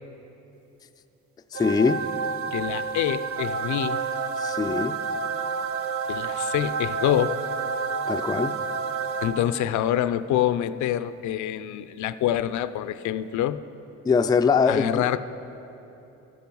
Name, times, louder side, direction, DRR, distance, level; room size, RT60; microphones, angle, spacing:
voice 1, 1.5-2.0 4.4-5.0 8.1-8.5 14.0-15.1, left 5 dB, 15° left, 8 dB, 0.3 m, -22 dB
sound 1, 1.5-9.8, right 5 dB, 50° right, 0.6 m, -29 dB
voice 2, 2.5-4.0 6.1-7.4 9.2-13.6 14.7-15.2, left 11 dB, 70° left, 13 dB, 0.5 m, -26 dB
12.5 x 9.3 x 5.4 m, 3.0 s
cardioid pair, 90°, 30 cm